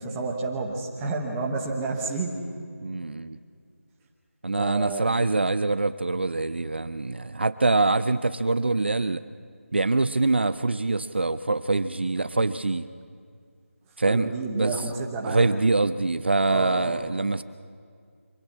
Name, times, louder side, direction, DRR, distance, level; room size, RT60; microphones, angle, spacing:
voice 1, 0.0-2.4 4.6-5.1 14.1-15.5 16.5-17.0, right 3 dB, 5° right, -1 dB, 1.0 m, -30 dB
voice 2, 2.8-3.4 4.4-9.2 9.7-12.9 14.0-14.9 15.2-17.4, right 3 dB, 50° right, 14 dB, 0.6 m, -24 dB
25.0 x 17.0 x 8.5 m, 2.2 s
figure-of-eight pair, 175°, 8 cm